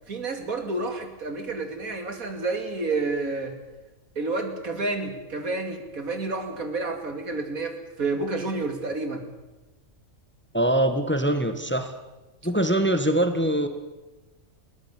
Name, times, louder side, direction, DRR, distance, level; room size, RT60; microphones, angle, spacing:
voice 1, 0.1-3.5 4.2-9.3, right 3 dB, 80° right, 6 dB, 3.1 m, -30 dB
voice 2, 10.5-11.9 12.4-13.7, right 1 dB, 10° left, 8 dB, 1.6 m, -23 dB
21.5 x 17.5 x 8.4 m, 1.1 s
omnidirectional pair, 1.4 m